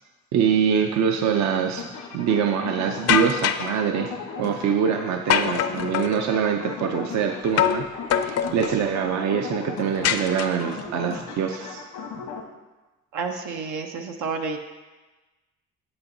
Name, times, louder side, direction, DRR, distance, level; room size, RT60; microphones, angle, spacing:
voice 1, 0.3-11.8, right 7 dB, 65° right, 5 dB, 0.6 m, -24 dB
sound 1, 1.8-12.4, left 5 dB, 90° left, 1.1 m, -37 dB
sound 2, 3.1-3.7 5.3-6.2 7.6-7.8 8.1-8.8 10.0-10.8, left 9 dB, 55° left, 0.5 m, -23 dB
voice 2, 13.1-14.6, right 4 dB, 90° right, 4 dB, 0.9 m, -30 dB
8.9 x 7.8 x 2.7 m, 1.2 s
cardioid pair, 90°, 30 cm